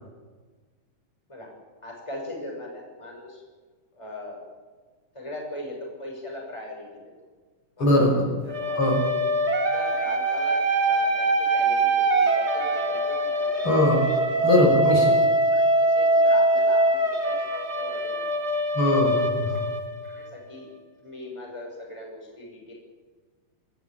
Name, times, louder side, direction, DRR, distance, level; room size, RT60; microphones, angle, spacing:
voice 1, 1.8-3.4 3.9-4.4 5.1-7.0 7.8-8.0 8.4-8.8 9.4-13.7 15.5-18.3 19.0-19.1 20.1-20.7 21.0-22.7, left 1 dB, 5° left, 0 dB, 6.0 m, -40 dB
voice 2, 7.8-8.2 8.8-9.0 13.6-14.1 14.4-15.1 18.7-19.7, left 1 dB, 35° left, -1 dB, 5.8 m, -21 dB
sound 1, 8.5-20.3, right 1 dB, 25° right, 1.8 m, -23 dB
29.0 x 14.0 x 8.9 m, 1.4 s
omnidirectional pair, 4.1 m